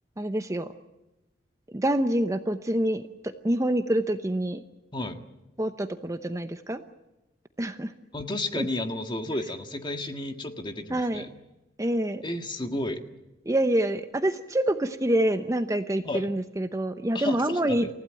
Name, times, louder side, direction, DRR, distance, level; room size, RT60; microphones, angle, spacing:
voice 1, 0.2-0.7 1.7-4.6 5.6-6.8 7.6-7.9 8.6-8.7 10.9-11.3 11.8-12.2 13.5-17.9, right 1 dB, 15° right, 8 dB, 0.8 m, -26 dB
voice 2, 8.1-11.3 12.2-13.0 16.0-16.3 17.1-17.9, left 1 dB, 25° left, 6 dB, 1.7 m, -32 dB
28.5 x 15.5 x 9.1 m, 0.99 s
head